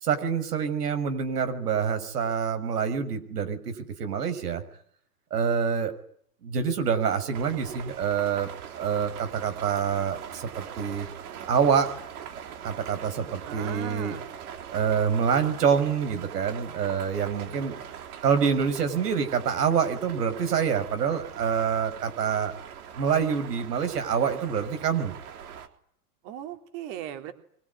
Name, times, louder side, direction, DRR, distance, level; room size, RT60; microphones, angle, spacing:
voice 1, 0.0-4.6 5.3-5.9 6.4-8.5 8.8-11.1 11.5-11.9 12.6-14.2 14.7-17.8 18.2-22.5 22.9-25.1, right 7 dB, 80° right, 9 dB, 6.2 m, -26 dB
sound 1, 7.3-25.7, right 8 dB, 65° right, 3.8 m, -42 dB
voice 2, 13.5-14.3 26.2-27.3, right 11 dB, 40° right, 7 dB, 3.0 m, -37 dB
24.5 x 22.0 x 9.9 m, 0.63 s
hypercardioid pair, 140°, 46 cm